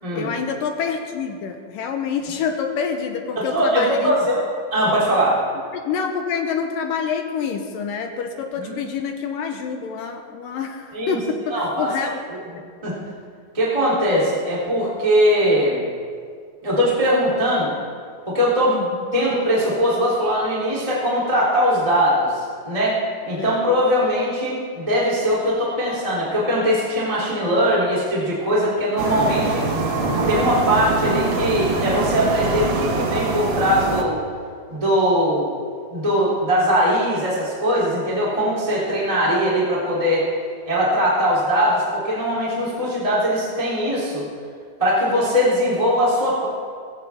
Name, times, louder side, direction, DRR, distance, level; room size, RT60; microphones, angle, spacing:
voice 1, 0.1-4.1 5.7-12.2 18.7-18.9 23.4-23.6, left 6 dB, 75° left, 4 dB, 2.4 m, -27 dB
voice 2, 3.4-4.4 4.7-5.4 8.6-8.7 10.9-11.2 11.5-11.9 12.8-13.0 13.5-15.8 16.6-17.7 18.3-18.8 19.1-29.7 30.3-34.2 34.7-35.5 35.9-40.2 40.7-44.3 44.8-46.5, equal, 10° right, -7 dB, 2.6 m, -20 dB
sound 1, 29.0-34.0, right 3 dB, 70° right, 1.1 m, -23 dB
20.0 x 15.5 x 3.5 m, 2.1 s
omnidirectional pair, 4.3 m